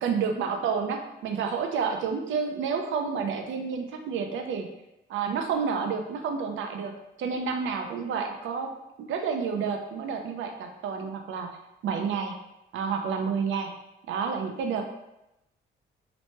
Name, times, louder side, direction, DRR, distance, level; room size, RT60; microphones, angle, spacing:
voice 1, 0.0-4.7 5.1-6.9 7.2-8.7 9.0-11.5 11.8-12.3 12.7-13.7 14.1-14.8, right 6 dB, 85° right, 4 dB, 0.5 m, -29 dB
3.0 x 2.1 x 2.8 m, 0.89 s
cardioid pair, 130°, 20 cm